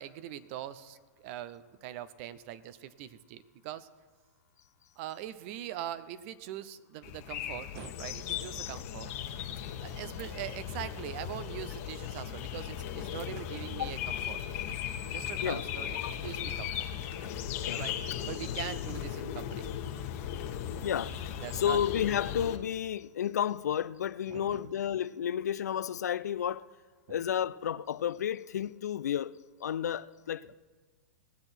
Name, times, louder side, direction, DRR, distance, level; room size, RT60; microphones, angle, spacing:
voice 1, 0.0-3.9 5.0-9.2 9.8-14.4 15.1-16.9 17.8-19.7 21.4-21.8 24.3-24.6 27.1-27.2, right 11 dB, 50° right, 0.8 m, -42 dB
sound 1, 7.0-22.6, left 9 dB, 55° left, 1.3 m, -37 dB
voice 2, 20.8-21.1 21.5-26.7 27.1-29.3 29.6-30.6, left 9 dB, 85° left, 0.4 m, -31 dB
19.0 x 8.0 x 4.5 m
hypercardioid pair, 120°, 9 cm